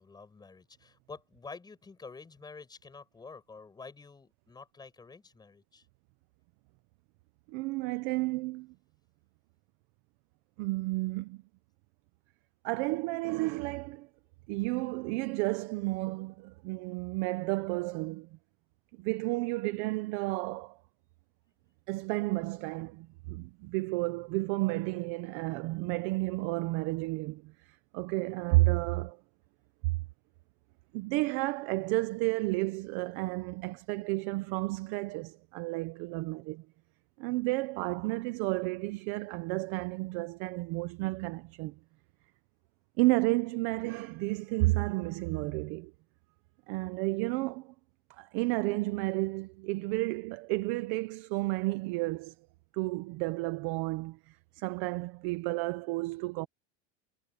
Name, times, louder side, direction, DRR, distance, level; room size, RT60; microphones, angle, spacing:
voice 1, 0.0-5.8, left 4 dB, 10° left, 7.6 m, -49 dB
voice 2, 7.5-8.7 10.6-11.4 12.6-14.1 14.5-18.4 19.0-20.8 21.9-29.2 29.8-30.0 30.9-36.7 37.2-41.8 43.0-45.9 46.7-47.7 48.2-52.3 52.7-56.5, right 22 dB, 35° right, 0.4 m, -32 dB
cardioid pair, 175°, 37 cm